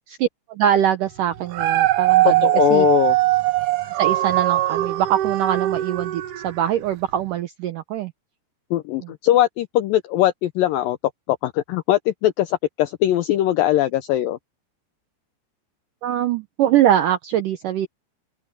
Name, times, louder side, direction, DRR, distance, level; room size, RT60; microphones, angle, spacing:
voice 1, 0.1-2.9 4.0-8.1 9.0-9.1 16.0-17.9, right 11 dB, 85° right, 1.9 m, -23 dB
Dog, 1.3-6.7 7.2-7.3, right 16 dB, 60° right, 2.5 m, -21 dB
voice 2, 2.2-3.2 8.7-11.0 11.3-14.4, left 13 dB, 90° left, 2.0 m, -20 dB
open air
omnidirectional pair, 4.9 m